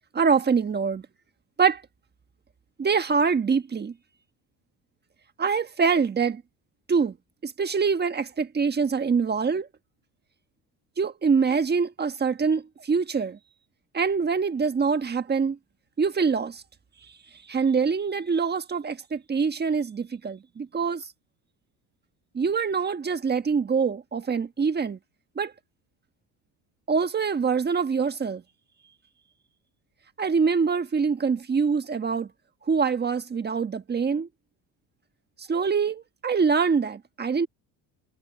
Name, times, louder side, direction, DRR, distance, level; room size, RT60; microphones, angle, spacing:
voice 1, 0.1-1.0 1.6-1.8 2.8-3.9 5.4-6.4 6.9-7.1 7.4-9.7 11.0-13.4 13.9-15.6 16.0-16.6 17.5-21.0 22.3-25.0 25.4-25.5 26.9-28.4 30.2-32.3 32.7-34.3 35.5-37.5, right 5 dB, 25° right, 1.5 m, -24 dB
cardioid pair, 115°, 38 cm